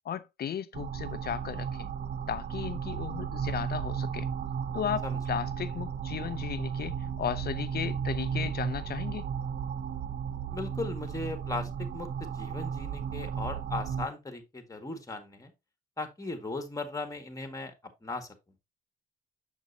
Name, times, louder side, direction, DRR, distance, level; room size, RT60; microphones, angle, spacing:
voice 1, 0.0-1.9 2.3-4.3 4.7-9.3, left 9 dB, 50° left, 0.6 m, -35 dB
sound 1, 0.7-14.1, right 7 dB, 55° right, 0.6 m, -34 dB
voice 2, 10.5-15.5 16.0-17.7 18.0-18.3, left 2 dB, 15° left, 1.8 m, -37 dB
7.1 x 6.3 x 2.7 m
cardioid pair, 90°, 20 cm